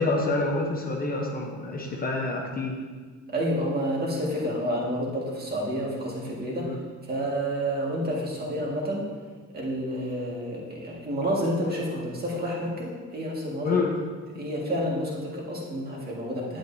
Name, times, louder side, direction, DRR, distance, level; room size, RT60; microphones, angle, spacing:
voice 1, 0.0-2.8 6.5-6.8 13.6-13.9, left 3 dB, 30° left, 0 dB, 0.8 m, -27 dB
voice 2, 3.3-6.7 7.1-9.1 9.5-13.8 14.3-16.6, equal, 30° right, -3 dB, 1.8 m, -29 dB
10.5 x 8.8 x 2.7 m, 1.5 s
cardioid pair, 165°, 31 cm